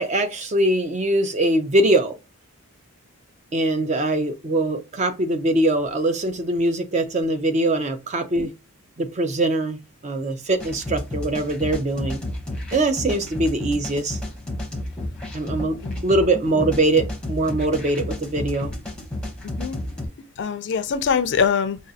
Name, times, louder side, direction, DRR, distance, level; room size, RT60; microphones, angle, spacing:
voice 1, 0.0-2.2 3.5-8.5 9.0-12.2 12.7-14.2 15.3-18.7, right 1 dB, 30° right, 0.4 m, -22 dB
sound 1, 10.6-20.1, left 1 dB, 5° left, 0.7 m, -32 dB
voice 2, 19.4-20.1 20.4-21.8, left 6 dB, 50° left, 0.4 m, -24 dB
5.0 x 2.3 x 2.7 m
head